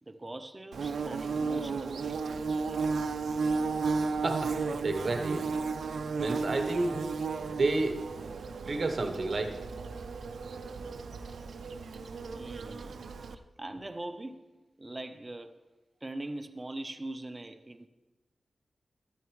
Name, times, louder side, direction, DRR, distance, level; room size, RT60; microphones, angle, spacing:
voice 1, 0.0-2.8 12.3-13.0 13.3-14.5 14.8-15.5 16.0-17.9, right 1 dB, 15° right, 0.4 m, -42 dB
Bird / Buzz, 0.7-13.3, right 4 dB, 80° right, 0.4 m, -34 dB
voice 2, 4.2-5.5 6.2-7.0 7.4-8.0 8.7-9.5, right 2 dB, 40° right, 0.8 m, -30 dB
12.5 x 9.3 x 3.1 m
wide cardioid pair, 180°, 0 cm